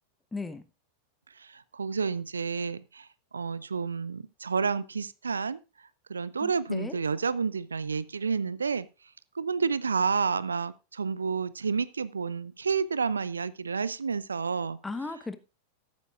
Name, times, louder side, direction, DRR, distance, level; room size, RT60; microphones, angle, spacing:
voice 1, 0.3-0.6 6.4-7.0 14.8-15.4, left 3 dB, 10° left, 1.0 m, -36 dB
voice 2, 1.5-3.1 3.3-5.6 6.1-8.9 9.4-14.8, right 5 dB, 75° right, 0.5 m, -30 dB
13.5 x 11.5 x 2.5 m
figure-of-eight pair, 90°, 0 cm